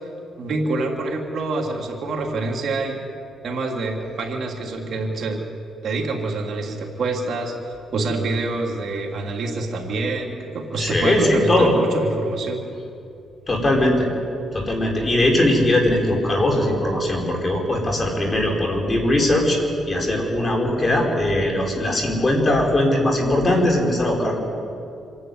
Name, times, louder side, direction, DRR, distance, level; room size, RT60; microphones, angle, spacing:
voice 1, 0.4-3.0 3.4-5.4 5.8-7.6 7.9-12.6, right 3 dB, 60° right, 0 dB, 3.1 m, -26 dB
voice 2, 10.8-11.7 13.5-14.1 14.5-19.6 19.9-24.3, left 1 dB, 25° left, 0 dB, 5.0 m, -20 dB
26.5 x 11.0 x 9.5 m, 2.7 s
cardioid pair, 90°, 0 cm